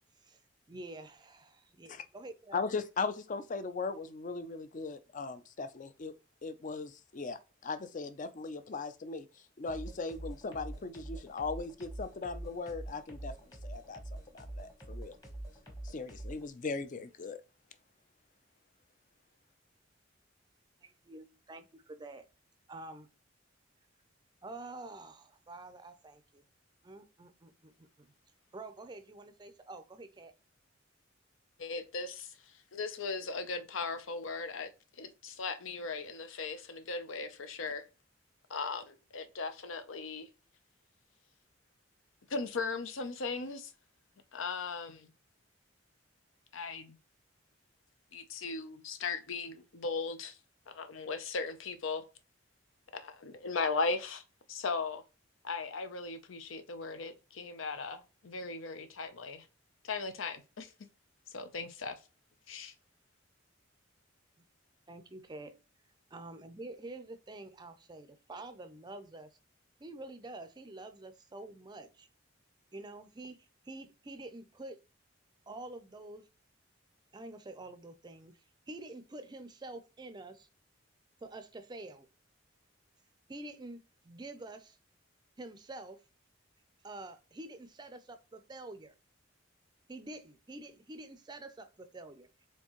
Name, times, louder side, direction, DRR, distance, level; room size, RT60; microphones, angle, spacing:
voice 1, 0.7-2.6 20.8-22.2 22.7-23.1 24.4-26.4 26.8-28.1 28.5-30.3 64.9-65.6 66.1-69.3 69.8-72.1 72.7-74.8 75.5-76.2 77.1-78.3 78.7-80.5 81.2-82.1 83.3-84.8 85.4-86.0 86.8-88.9 89.9-92.3, right 2 dB, 20° right, 0.4 m, -47 dB
voice 2, 2.5-6.1 6.4-14.0 14.3-15.2 15.8-17.4, left 4 dB, 40° left, 0.4 m, -38 dB
sound 1, 9.7-16.5, right 1 dB, 20° left, 1.1 m, -45 dB
voice 3, 31.6-34.7 35.0-37.8 38.5-40.3 42.3-43.7 44.3-45.1 46.5-47.0 48.1-50.4 50.7-52.0 52.9-54.2 54.5-55.0 55.4-59.5 59.8-60.7 61.3-62.0 62.5-62.7, left 4 dB, 80° left, 0.6 m, -38 dB
4.5 x 3.4 x 3.0 m
head